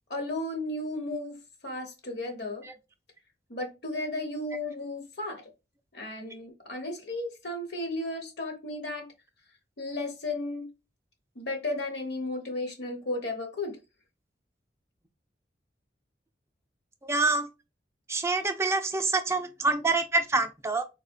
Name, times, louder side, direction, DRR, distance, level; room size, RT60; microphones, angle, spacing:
voice 1, 0.1-1.4 1.6-2.6 3.5-5.5 5.9-9.1 9.8-10.7 11.3-13.8, left 2 dB, 65° left, 1.0 m, -34 dB
voice 2, 17.0-17.5 18.1-20.8, right 3 dB, 15° right, 0.4 m, -26 dB
4.3 x 2.1 x 2.5 m
head